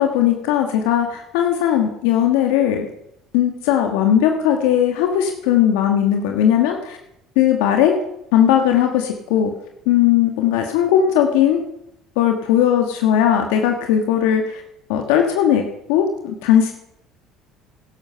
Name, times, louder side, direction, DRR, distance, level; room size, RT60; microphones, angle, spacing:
voice 1, 0.0-2.9 3.3-7.0 7.3-7.9 8.3-9.5 9.9-11.6 12.2-14.6 14.9-15.6 15.9-16.7, left 10 dB, 80° left, 4 dB, 1.3 m, -18 dB
13.5 x 11.5 x 5.5 m, 0.81 s
supercardioid pair, 80°, 0 cm